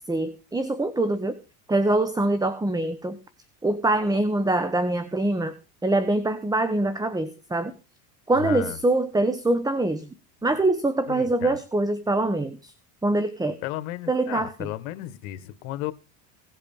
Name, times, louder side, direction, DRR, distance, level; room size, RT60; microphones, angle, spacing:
voice 1, 0.1-1.4 1.7-3.2 3.6-5.5 5.8-7.7 8.3-10.1 10.4-12.7 13.0-13.6 14.1-14.5, right 2 dB, 10° right, 12 dB, 1.1 m, -24 dB
voice 2, 8.4-8.8 11.1-11.6 13.6-15.9, left 14 dB, 90° left, 13 dB, 1.6 m, -33 dB
18.0 x 8.2 x 5.4 m, 0.33 s
supercardioid pair, 115°, 41 cm